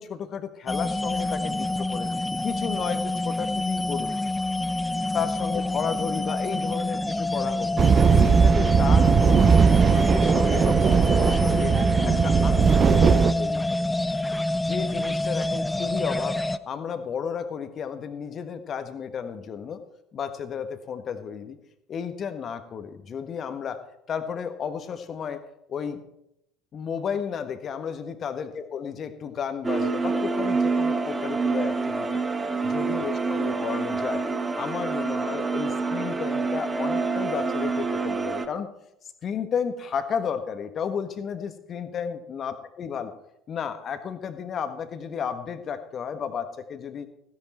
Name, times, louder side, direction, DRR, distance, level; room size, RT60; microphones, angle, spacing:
voice 1, 0.0-2.1 2.4-4.1 5.1-7.7 8.1-11.7 12.0-13.9 14.6-19.8 20.1-21.6 21.9-25.4 25.7-26.0 26.7-32.1 32.6-34.2 34.5-38.7 39.2-43.1 43.5-47.1, left 7 dB, 40° left, 9 dB, 1.5 m, -33 dB
sound 1, 0.7-16.6, left 2 dB, 10° left, 0.6 m, -27 dB
sound 2, 7.8-13.3, right 6 dB, 35° right, 0.6 m, -19 dB
sound 3, 29.6-38.5, right 4 dB, 15° right, 1.2 m, -27 dB
15.5 x 10.5 x 4.4 m, 0.79 s
figure-of-eight pair, 65°, 0 cm